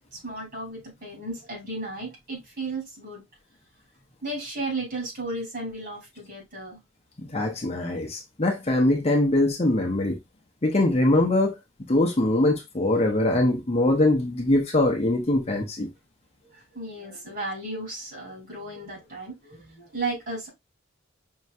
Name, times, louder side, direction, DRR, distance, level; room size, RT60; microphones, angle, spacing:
voice 1, 0.1-3.2 4.2-6.8 16.4-20.5, right 2 dB, 50° right, 3.0 m, -34 dB
voice 2, 7.2-10.2 10.6-11.5 11.9-15.9, left 1 dB, 35° left, 0.8 m, -22 dB
5.4 x 3.0 x 2.4 m
head